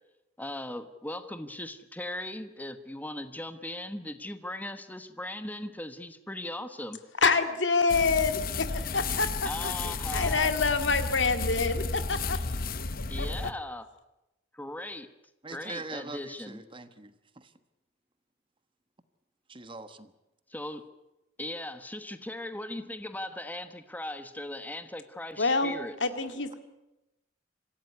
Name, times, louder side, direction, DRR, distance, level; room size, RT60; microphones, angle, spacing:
voice 1, 0.4-7.0 9.4-10.5 13.1-13.9 14.5-15.1 15.5-16.6 20.5-20.8 21.4-25.9, left 1 dB, 10° left, 10 dB, 1.2 m, -38 dB
voice 2, 7.2-12.9 13.2-13.3 25.4-25.7 26.0-26.6, left 4 dB, 70° left, 9 dB, 2.2 m, -27 dB
sound 1, 7.9-13.5, left 4 dB, 50° left, 1.0 m, -33 dB
voice 3, 15.4-17.5 19.5-20.1, right 3 dB, 25° right, 11 dB, 1.3 m, -42 dB
25.5 x 16.0 x 9.7 m, 0.96 s
head